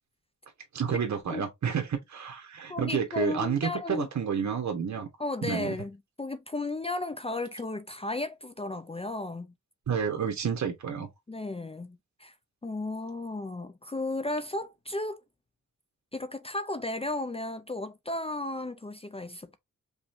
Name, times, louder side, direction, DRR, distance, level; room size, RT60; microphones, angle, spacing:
voice 1, 0.7-5.1 5.4-5.7 9.9-11.1, right 7 dB, 70° right, 1.3 m, -30 dB
voice 2, 2.7-4.1 5.2-9.5 11.3-12.3 12.6-15.2 16.1-19.6, left 2 dB, 20° left, 0.5 m, -34 dB
5.4 x 3.2 x 2.6 m
wide cardioid pair, 100°, 29 cm